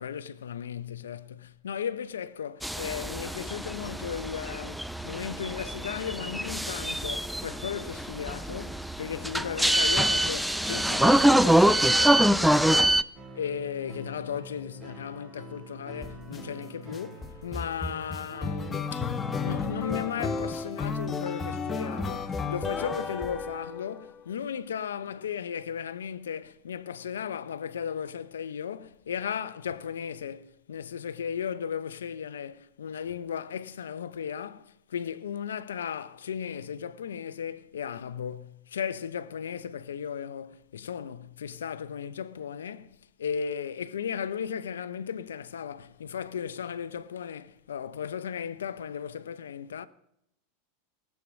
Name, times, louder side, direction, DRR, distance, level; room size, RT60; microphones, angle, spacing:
voice 1, 0.0-49.9, left 8 dB, 80° left, 0.8 m, -36 dB
sound 1, 2.6-13.0, right 1 dB, ahead, 0.5 m, -25 dB
sound 2, 13.1-18.8, right 1 dB, 30° right, 2.7 m, -46 dB
sound 3, 16.0-16.4 16.9-24.1, left 4 dB, 20° left, 1.3 m, -33 dB
18.5 x 8.5 x 6.4 m
hypercardioid pair, 95°, 0 cm